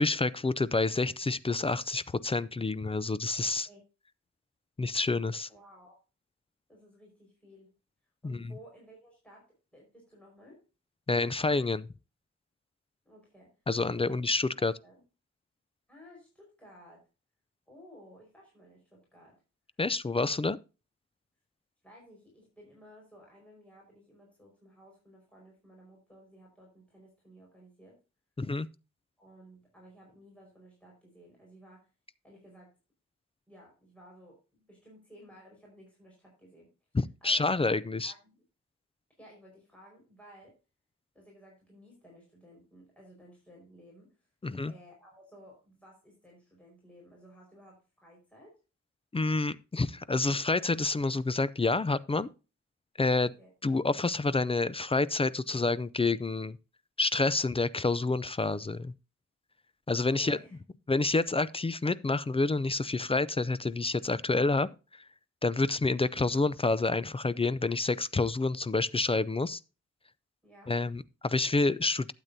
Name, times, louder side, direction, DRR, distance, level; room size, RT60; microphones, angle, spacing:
voice 1, 0.0-3.7 4.8-5.5 8.2-8.5 11.1-11.9 13.7-14.7 19.8-20.6 28.4-28.7 36.9-38.1 44.4-44.7 49.1-52.3 53.0-53.3 53.6-56.6 57.0-58.9 59.9-60.4 60.9-65.0 65.4-69.6 70.7-72.1, left 3 dB, 20° left, 0.4 m, -28 dB
voice 2, 5.5-6.0 6.7-7.7 8.2-10.6 13.0-13.5 13.9-14.2 14.6-15.0 15.9-17.0 17.7-19.4 21.8-28.0 29.2-31.9 32.2-32.7 33.5-36.7 37.2-38.2 39.2-40.6 41.1-44.2 44.7-48.6 53.2-53.5 60.0-60.6 70.4-70.7, equal, 5° left, 4.9 m, -55 dB
12.0 x 8.2 x 2.7 m
wide cardioid pair, 140°, 29 cm